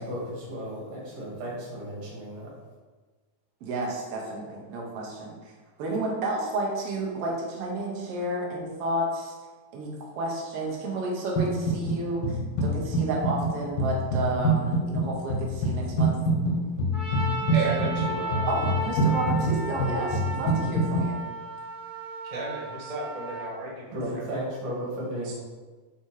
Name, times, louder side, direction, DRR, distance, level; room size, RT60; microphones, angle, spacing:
voice 1, 0.0-2.5 23.9-25.3, equal, 80° right, -4 dB, 3.8 m, -34 dB
voice 2, 3.6-5.5 5.8-9.3 9.7-9.9 10.1-16.2 17.7-17.8 18.5-21.2, right 2 dB, 55° right, -2 dB, 2.0 m, -31 dB
sound 1, 11.4-12.0 12.2-21.1, right 1 dB, 55° left, 1.4 m, -26 dB
Trumpet, 16.9-23.5, right 1 dB, 40° left, 0.6 m, -35 dB
voice 3, 17.5-18.5 22.2-24.2 25.2-25.3, right 2 dB, 40° right, -5 dB, 0.5 m, -34 dB
8.7 x 3.3 x 4.9 m, 1.3 s
omnidirectional pair, 3.8 m